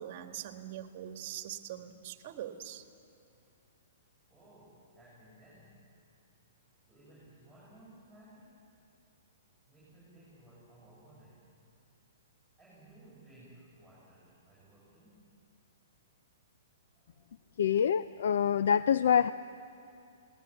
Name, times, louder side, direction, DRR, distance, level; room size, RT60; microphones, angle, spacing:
voice 1, 0.0-2.8, right 11 dB, 40° right, 7 dB, 1.5 m, -42 dB
voice 2, 4.3-5.8 6.9-8.7 9.7-11.5 12.6-15.3 16.9-17.3, right 1 dB, 5° left, -8 dB, 7.4 m, -58 dB
voice 3, 17.6-19.3, left 8 dB, 70° left, 14 dB, 0.4 m, -26 dB
23.0 x 18.5 x 9.0 m, 2.5 s
hypercardioid pair, 165°, 0 cm